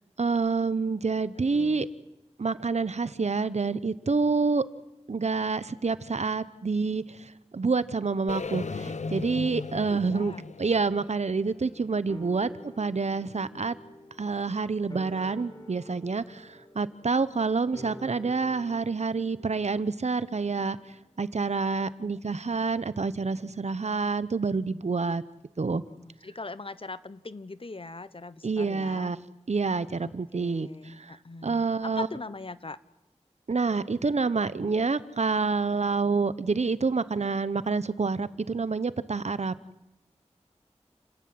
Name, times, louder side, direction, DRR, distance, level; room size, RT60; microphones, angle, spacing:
voice 1, 0.2-1.9 2.4-4.6 5.1-13.7 14.2-20.8 21.2-25.2 25.6-25.8 28.4-29.2 29.5-31.2 31.4-32.1 33.5-39.6, right 4 dB, 70° right, 15 dB, 1.0 m, -28 dB
voice 2, 1.5-1.8 9.9-10.5 25.9-29.1 30.0-32.8, left 3 dB, 50° left, 15 dB, 1.1 m, -41 dB
sound 1, 8.3-12.3, left 4 dB, 80° left, 0.9 m, -37 dB
sound 2, 12.1-22.7 23.0-23.1, equal, 35° left, 4.8 m, -50 dB
30.0 x 13.5 x 9.7 m, 0.95 s
wide cardioid pair, 50°, 12 cm